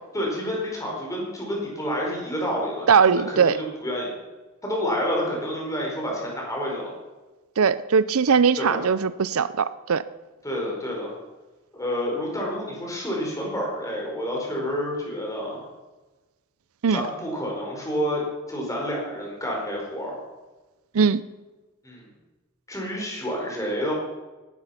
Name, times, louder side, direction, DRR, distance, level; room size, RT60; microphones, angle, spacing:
voice 1, 0.1-4.1 4.6-6.9 8.6-8.9 10.4-11.1 11.7-15.6 16.9-18.2 18.5-20.2 21.8-22.1 22.7-23.9, equal, 15° left, -1 dB, 4.9 m, -29 dB
voice 2, 2.9-3.6 7.6-10.0 16.8-17.0 20.9-21.2, right 6 dB, 75° right, 16 dB, 0.6 m, -20 dB
18.0 x 12.0 x 5.8 m, 1.2 s
head